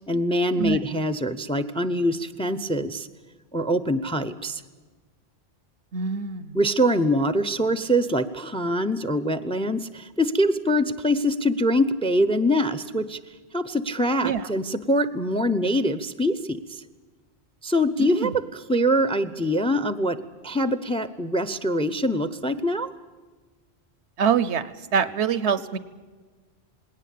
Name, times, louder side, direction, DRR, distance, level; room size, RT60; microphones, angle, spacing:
voice 1, 0.1-3.1 3.5-4.6 6.5-13.2 13.5-16.8 17.6-18.4 18.7-20.2 20.4-22.9, equal, 5° left, 13 dB, 0.5 m, -24 dB
voice 2, 5.9-6.6 14.2-14.5 18.0-18.3 24.2-25.8, right 7 dB, 85° right, 15 dB, 1.1 m, -25 dB
20.0 x 18.0 x 8.4 m, 1.4 s
omnidirectional pair, 1.1 m